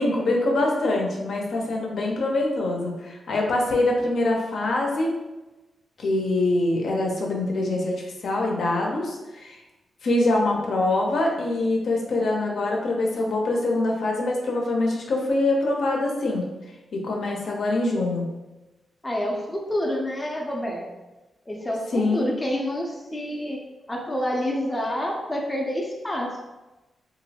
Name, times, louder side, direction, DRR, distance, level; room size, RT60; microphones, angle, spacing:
voice 1, 0.0-5.1 6.0-9.6 10.0-16.5 16.9-18.2 21.9-22.3, left 2 dB, 70° left, -1 dB, 0.6 m, -24 dB
voice 2, 19.0-20.9 21.5-23.6 23.9-26.4, equal, 15° left, -1 dB, 0.5 m, -28 dB
2.9 x 2.6 x 2.7 m, 1.1 s
wide cardioid pair, 110°, 0 cm